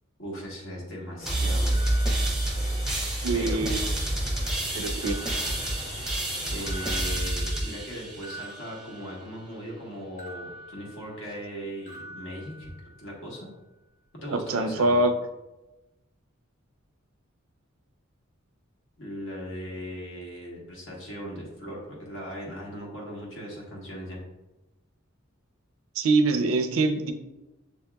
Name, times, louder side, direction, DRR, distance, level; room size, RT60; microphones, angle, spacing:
voice 1, 0.2-1.8 3.3-3.7 6.5-12.7 13.0-13.5 14.2-15.1 19.0-24.2, equal, 65° left, -3 dB, 1.2 m, -38 dB
sound 1, 1.2-7.1, left 1 dB, 85° left, 1.3 m, -40 dB
sound 2, 1.3-8.8, right 1 dB, ahead, 0.7 m, -28 dB
sound 3, 1.7-3.0 3.4-4.2 5.0-6.3 6.6-9.6 10.2-11.6 11.9-13.2, right 1 dB, 40° left, 1.3 m, -46 dB
voice 2, 3.2-3.9 4.7-5.2 5.4-5.5 14.3-15.1 26.0-27.1, right 2 dB, 85° right, 6 dB, 0.5 m, -24 dB
6.9 x 2.8 x 2.3 m, 1.0 s
head